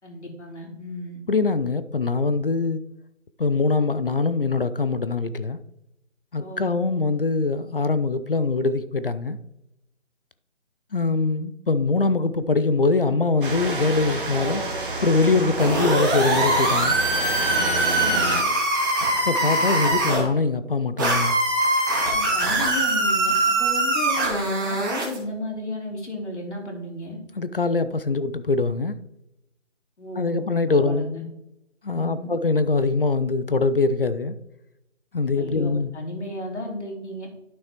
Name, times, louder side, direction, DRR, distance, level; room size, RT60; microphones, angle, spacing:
voice 1, 0.0-1.2 6.4-6.7 17.9-18.3 22.1-27.2 30.0-31.2 31.9-32.3 35.4-37.3, left 1 dB, 70° left, 0 dB, 3.3 m, -34 dB
voice 2, 1.3-2.8 3.4-5.6 6.3-9.4 10.9-14.6 15.0-17.0 19.3-21.4 27.4-28.9 30.2-31.1 31.8-34.4 35.1-35.9, left 3 dB, 50° left, 13 dB, 0.5 m, -23 dB
sound 1, 13.4-18.4, right 2 dB, 45° right, 1.7 m, -28 dB
sound 2, 15.6-20.2 21.0-25.2, right 1 dB, 15° right, 1.5 m, -22 dB
12.0 x 6.2 x 3.0 m, 0.86 s
figure-of-eight pair, 160°, 37 cm